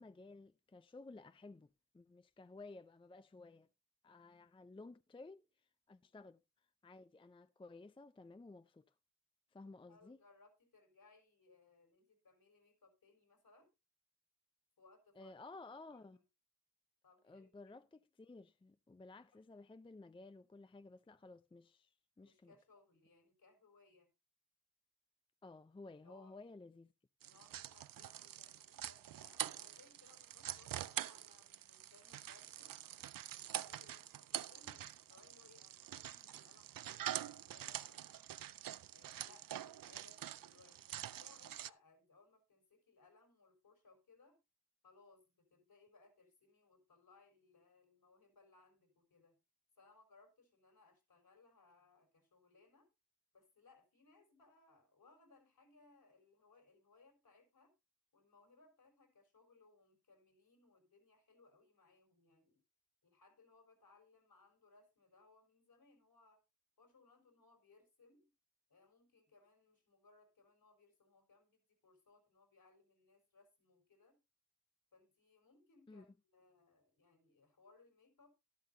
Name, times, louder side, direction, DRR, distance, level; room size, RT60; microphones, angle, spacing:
voice 1, 0.0-3.7 4.0-5.4 5.9-6.4 6.8-8.9 9.5-10.2 15.2-16.2 17.2-21.9 22.2-22.6 25.4-26.9 75.9-76.1, left 3 dB, 15° left, 0.5 m, -55 dB
voice 2, 9.6-13.7 14.8-15.3 15.9-16.2 17.0-17.5 19.3-19.5 22.2-24.1 26.0-26.5 27.2-32.8 33.3-38.0 38.9-44.4 44.8-49.4 49.8-52.9 53.3-57.7 58.1-62.6 63.0-66.4 66.8-68.3 68.7-74.2 74.9-78.3, left 3 dB, 65° left, 4.5 m, -68 dB
sound 1, 27.2-41.7, right 11 dB, 65° right, 0.5 m, -46 dB
11.5 x 11.5 x 2.7 m
cardioid pair, 65°, 37 cm